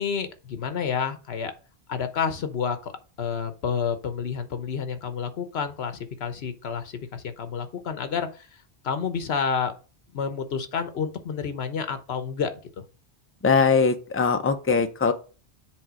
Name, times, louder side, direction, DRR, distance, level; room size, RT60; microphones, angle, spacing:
voice 1, 0.0-1.5 1.9-2.9 3.2-8.5 8.8-9.7 10.1-12.5, left 6 dB, 75° left, 9 dB, 1.2 m, -29 dB
voice 2, 13.4-15.1, left 5 dB, 15° left, 7 dB, 0.5 m, -21 dB
7.6 x 3.6 x 6.2 m, 0.35 s
omnidirectional pair, 1.1 m